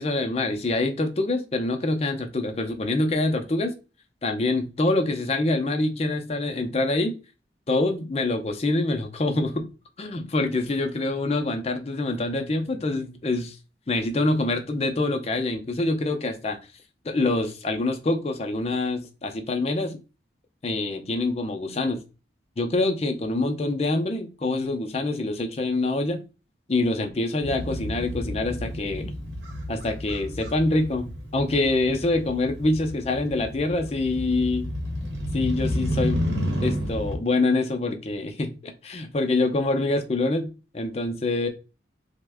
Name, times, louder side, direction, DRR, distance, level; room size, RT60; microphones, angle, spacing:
voice 1, 0.0-3.7 4.2-7.2 7.7-9.7 10.0-13.6 13.9-16.6 17.0-20.0 20.6-22.0 22.6-26.2 26.7-29.1 29.7-34.7 35.3-36.3 36.6-40.5 40.7-41.5, left 2 dB, 35° left, 0.5 m, -25 dB
Motorcycle, 27.4-37.2, equal, 75° right, 0.9 m, -31 dB
3.4 x 2.1 x 3.4 m
head